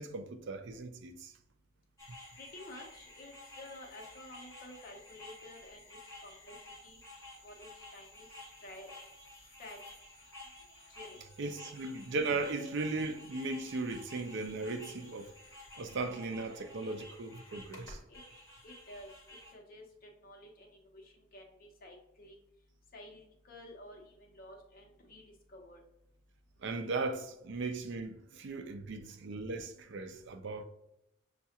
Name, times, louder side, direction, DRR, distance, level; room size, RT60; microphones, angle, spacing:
voice 1, 0.0-1.3 11.4-15.3 15.8-18.0 26.6-30.6, right 3 dB, 60° right, 0.4 m, -37 dB
sound 1, 2.0-19.5, left 2 dB, 15° left, 1.2 m, -52 dB
voice 2, 2.3-7.0 7.4-8.3 8.6-9.0 9.6-9.8 10.9-11.3 18.1-18.2 18.6-22.4 22.9-25.2 25.5-25.8, left 1 dB, 45° left, 0.9 m, -52 dB
6.5 x 2.3 x 2.8 m
head